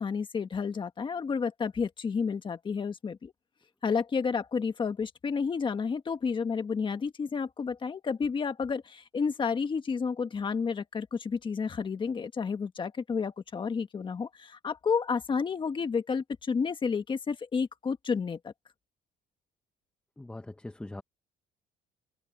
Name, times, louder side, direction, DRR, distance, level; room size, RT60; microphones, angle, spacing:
voice 1, 0.0-3.3 3.8-18.5, left 5 dB, 30° left, 1.6 m, -31 dB
voice 2, 20.2-21.0, left 2 dB, 5° left, 0.6 m, -41 dB
open air
cardioid pair, 140°, 17 cm